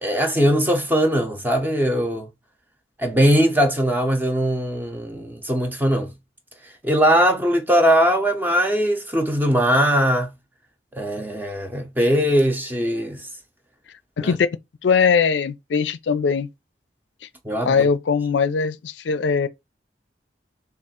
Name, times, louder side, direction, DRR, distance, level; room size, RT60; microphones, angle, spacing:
voice 1, 0.0-2.3 3.0-6.1 6.8-10.3 11.0-13.2 14.2-14.4 17.4-17.9, equal, 10° right, 0.7 m, -20 dB
voice 2, 14.2-14.5 14.8-16.5 17.6-19.5, left 5 dB, 80° left, 0.4 m, -20 dB
3.6 x 2.4 x 4.1 m
head